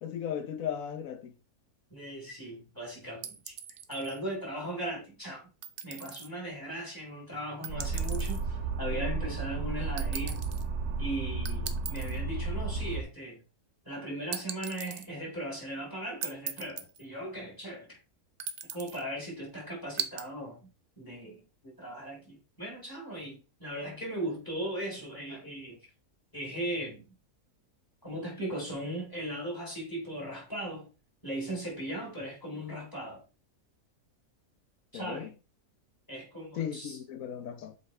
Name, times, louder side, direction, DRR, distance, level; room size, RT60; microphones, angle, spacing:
voice 1, 0.0-1.3 34.9-35.3 36.5-37.8, left 9 dB, 65° left, 1.0 m, -36 dB
voice 2, 1.9-3.5 3.9-5.5 5.8-10.4 10.9-13.4 13.9-18.0 18.7-20.6 21.0-21.4 21.6-25.8 26.3-27.0 28.0-30.9 31.2-33.2 34.9-35.3 36.1-37.0, right 1 dB, 10° left, 3.5 m, -38 dB
sound 1, 3.2-4.2 5.6-6.3 7.6-8.4 10.0-10.6 11.4-12.2 14.3-15.1 16.2-17.0 18.4-19.0 20.0-20.3, right 7 dB, 60° right, 0.5 m, -39 dB
sound 2, 7.7-13.0, right 4 dB, 80° right, 1.3 m, -33 dB
7.6 x 4.1 x 3.2 m
omnidirectional pair, 1.7 m